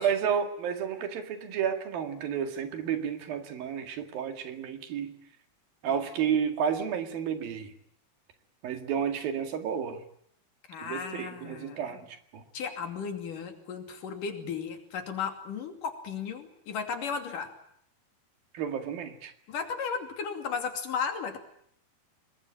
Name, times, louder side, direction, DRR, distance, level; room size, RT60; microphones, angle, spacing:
voice 1, 0.0-5.1 5.8-7.7 8.6-10.0 10.8-12.4 18.5-19.3, right 8 dB, 75° right, 7 dB, 3.9 m, -31 dB
voice 2, 10.7-12.0 12.5-17.5 19.5-21.4, left 6 dB, 60° left, 6 dB, 4.2 m, -35 dB
26.0 x 21.5 x 8.8 m, 0.68 s
omnidirectional pair, 4.3 m